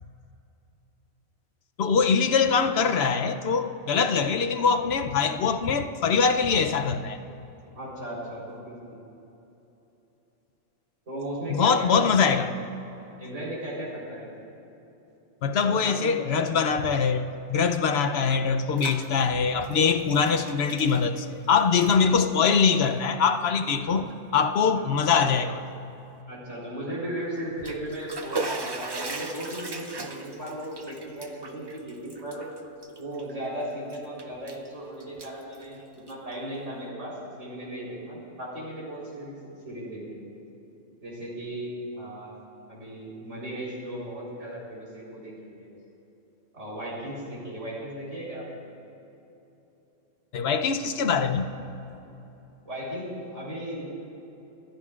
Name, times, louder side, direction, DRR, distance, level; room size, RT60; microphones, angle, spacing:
voice 1, 1.8-7.2 11.5-12.5 15.4-25.6 50.3-51.5, left 5 dB, 65° left, 0.9 m, -23 dB
voice 2, 7.7-8.9 11.1-12.5 13.2-14.3 15.6-16.4 24.8-24.9 26.3-32.5 33.0-39.4 39.6-40.3 41.0-42.3 42.7-45.7 46.5-48.7 52.6-54.1, right 1 dB, 75° right, 4.1 m, -36 dB
Bathtub (filling or washing), 18.4-19.1 19.4-21.5 21.7-22.0 22.8-22.9 23.6-23.7 24.1-24.2 27.4-33.5 33.9-34.7 35.0-36.3, right 3 dB, 25° right, 0.6 m, -38 dB
26.0 x 13.0 x 2.4 m
omnidirectional pair, 1.3 m